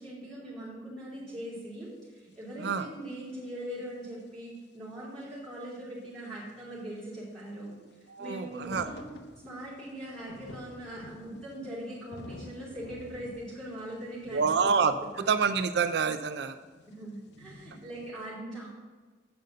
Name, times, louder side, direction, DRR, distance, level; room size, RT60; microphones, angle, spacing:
voice 1, 0.0-7.8 8.2-9.2 9.4-14.7 15.1-15.2 16.9-18.7, right 1 dB, ahead, -12 dB, 2.9 m, -41 dB
sound 1, 2.0-2.1 2.3-2.4 2.9-3.5 4.2-4.3 4.6-4.7 5.2-5.5 6.2-18.1, left 1 dB, 65° left, 0.7 m, -50 dB
voice 2, 8.1-8.9 14.3-15.0 15.3-16.5, right 5 dB, 60° right, 10 dB, 0.4 m, -27 dB
7.9 x 5.2 x 6.5 m, 1.4 s
head